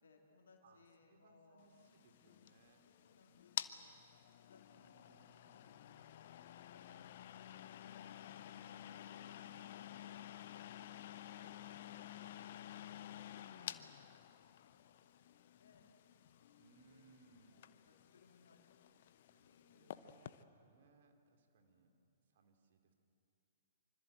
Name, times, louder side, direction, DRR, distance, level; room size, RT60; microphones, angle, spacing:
voice 1, 0.0-1.9 2.8-7.2 13.4-16.0 16.8-17.2 17.7-18.9 19.4-20.1 20.5-20.7 21.6-22.1, left 4 dB, 65° left, 1 dB, 2.8 m, -71 dB
voice 2, 0.6-2.9 4.6-6.1 13.5-13.9 16.6-17.6 19.3-21.9 22.3-22.9, right 4 dB, 50° right, 5 dB, 2.9 m, -69 dB
sound 1, 1.7-20.4, left 11 dB, 50° left, 0.9 m, -51 dB
25.5 x 25.0 x 8.1 m, 2.6 s
figure-of-eight pair, 115°, 0 cm